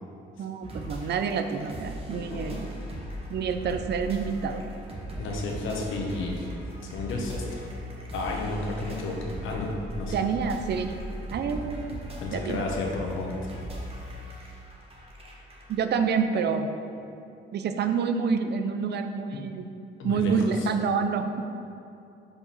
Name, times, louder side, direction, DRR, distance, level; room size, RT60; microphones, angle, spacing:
voice 1, 0.4-2.7 3.3-4.6 10.1-10.9 11.3-12.0 12.3-12.6 15.7-16.7 17.5-19.7 20.0-21.4, right 6 dB, 60° right, 8 dB, 0.6 m, -27 dB
sound 1, 0.6-15.8, equal, 30° right, 1.3 m, -39 dB
voice 2, 2.1-2.5 5.2-6.5 6.8-7.7 8.1-10.1 12.2-13.5 20.0-20.3, left 3 dB, 80° left, 0 dB, 1.1 m, -32 dB
5.3 x 4.8 x 5.4 m, 2.7 s
cardioid pair, 90°, 20 cm